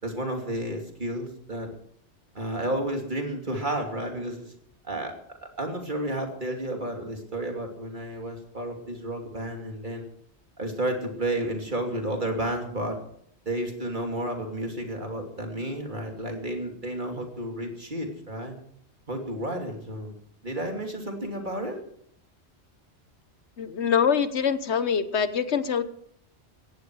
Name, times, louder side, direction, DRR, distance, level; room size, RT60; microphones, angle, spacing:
voice 1, 0.0-1.7 2.3-4.4 4.8-5.1 5.6-10.0 10.6-13.0 13.4-18.5 19.1-20.1 20.4-21.8, right 1 dB, 45° right, 3 dB, 3.0 m, -31 dB
voice 2, 23.6-25.8, left 7 dB, 75° left, 13 dB, 1.3 m, -24 dB
18.0 x 14.5 x 4.8 m, 0.66 s
omnidirectional pair, 1.2 m